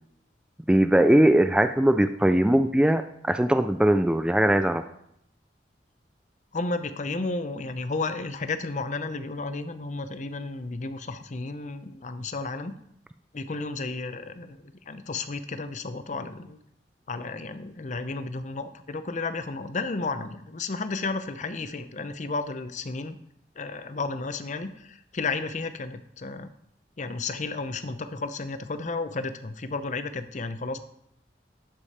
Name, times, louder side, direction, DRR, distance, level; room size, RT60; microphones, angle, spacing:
voice 1, 0.7-4.8, right 1 dB, 5° right, 9 dB, 0.3 m, -20 dB
voice 2, 6.5-12.7 13.3-14.6 14.9-16.6 17.1-23.2 23.6-26.5 27.0-30.8, left 3 dB, 45° left, 10 dB, 0.6 m, -32 dB
12.0 x 5.0 x 4.2 m, 0.74 s
head